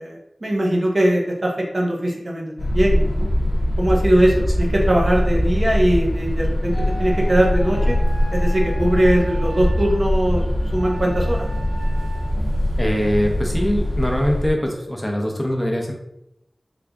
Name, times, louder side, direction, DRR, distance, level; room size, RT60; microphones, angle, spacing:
voice 1, 0.0-3.3 3.8-8.0 8.3-11.4, right 1 dB, 55° right, -1 dB, 0.8 m, -21 dB
sound 1, 2.6-14.5, equal, 85° left, 0.6 m, -22 dB
sound 2, 6.7-10.0 10.7-12.2, equal, 70° right, 1.1 m, -37 dB
voice 2, 12.8-15.9, equal, 15° left, 0 dB, 0.7 m, -22 dB
3.4 x 2.5 x 3.4 m, 0.84 s
wide cardioid pair, 55°, 0 cm